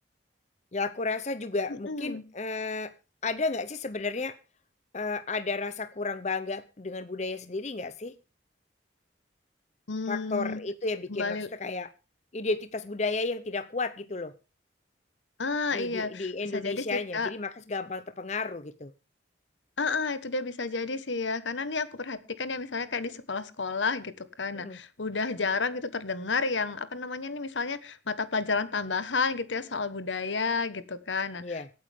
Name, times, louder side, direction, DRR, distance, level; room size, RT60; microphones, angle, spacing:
voice 1, 0.7-2.9 3.2-4.4 4.9-8.2 10.1-11.9 12.3-14.4 15.7-18.9 24.5-24.8 31.4-31.7, left 3 dB, 40° left, 0.7 m, -33 dB
voice 2, 1.7-2.2 9.9-10.6 11.1-11.5 15.4-17.3 19.8-31.7, left 4 dB, 80° left, 1.3 m, -31 dB
24.0 x 8.8 x 3.6 m
head